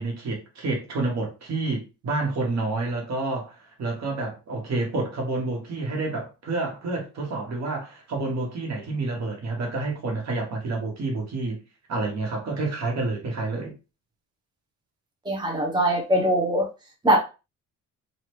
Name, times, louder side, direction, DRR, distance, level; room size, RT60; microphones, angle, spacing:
voice 1, 0.0-11.6 11.9-13.7, right 2 dB, 60° right, 1.5 m, -29 dB
voice 2, 15.3-16.7 17.0-17.2, equal, 15° right, 1.0 m, -21 dB
3.3 x 2.7 x 3.0 m
cardioid pair, 90°, 30 cm